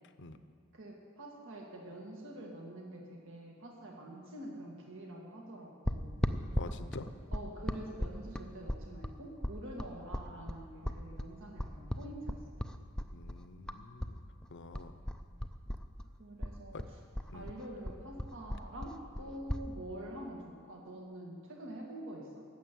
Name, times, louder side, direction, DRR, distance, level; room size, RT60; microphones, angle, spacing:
voice 1, 0.7-6.2 7.3-12.4 16.2-16.8 17.3-22.4, right 1 dB, 65° right, 0 dB, 2.0 m, -46 dB
sound 1, 5.9-14.2 14.4-16.1 16.4-19.7, equal, 5° left, 0.5 m, -37 dB
voice 2, 6.5-7.1 13.1-14.2 14.5-15.0 16.7-16.8 17.3-17.5, left 3 dB, 55° left, 10 dB, 0.8 m, -47 dB
15.0 x 7.5 x 9.2 m, 2.1 s
head